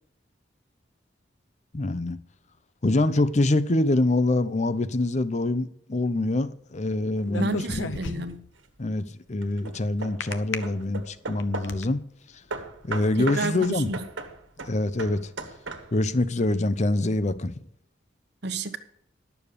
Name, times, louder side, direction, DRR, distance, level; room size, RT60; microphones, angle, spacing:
voice 1, 1.7-2.2 2.8-7.9 8.8-12.0 12.8-13.9 14.7-15.3 15.9-17.5, left 2 dB, 40° left, 0.7 m, -25 dB
sound 1, 7.3-8.5 10.2-10.6 11.2-11.8, left 4 dB, 80° left, 0.8 m, -32 dB
voice 2, 7.3-8.4 13.2-14.1 18.4-18.8, right 2 dB, 60° right, 1.1 m, -30 dB
Hammer / Wood, 8.3-8.8 9.4-11.9 12.5-16.2, right 3 dB, 85° right, 1.5 m, -38 dB
11.5 x 7.0 x 6.7 m
head